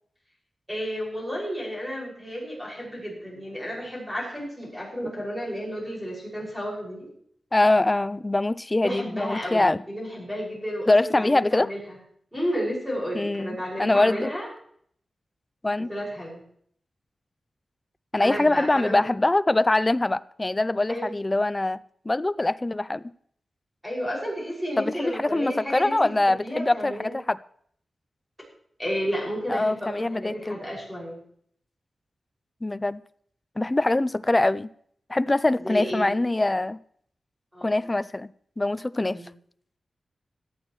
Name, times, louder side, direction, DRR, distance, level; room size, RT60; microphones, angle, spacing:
voice 1, 0.7-7.1 8.8-12.0 12.3-14.5 15.8-16.4 18.2-19.0 20.9-21.1 23.8-27.2 28.8-31.2 35.6-36.1 37.5-37.8 39.0-39.3, equal, 5° right, 6.0 m, -32 dB
voice 2, 7.5-9.8 10.9-11.7 13.1-14.3 15.6-15.9 18.1-21.8 22.1-23.0 24.8-27.4 29.5-30.6 32.6-33.0 33.6-34.7 35.1-36.8 37.6-39.2, left 2 dB, 20° left, 0.4 m, -23 dB
17.5 x 11.5 x 3.1 m
wide cardioid pair, 155°, 0 cm